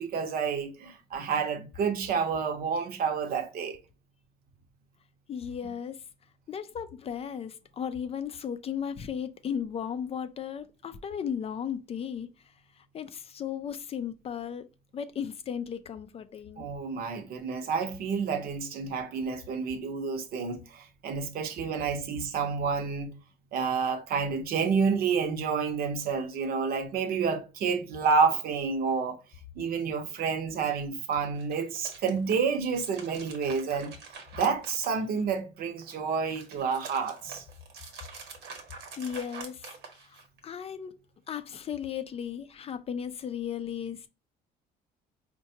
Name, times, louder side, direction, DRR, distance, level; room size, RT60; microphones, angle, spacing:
voice 1, 0.0-3.8 16.6-23.1 23.5-29.2 29.6-33.9 34.3-37.4, right 5 dB, 60° right, 0.8 m, -29 dB
voice 2, 5.3-6.0 6.5-12.3 12.8-14.7 14.9-16.7 39.0-39.7 40.0-40.2 40.4-40.9 41.3-44.1, left 8 dB, 35° left, 0.4 m, -35 dB
sound 1, 31.3-35.4 35.8-40.4, right 5 dB, 80° right, 1.1 m, -46 dB
4.5 x 2.2 x 2.7 m
cardioid pair, 110°, 17 cm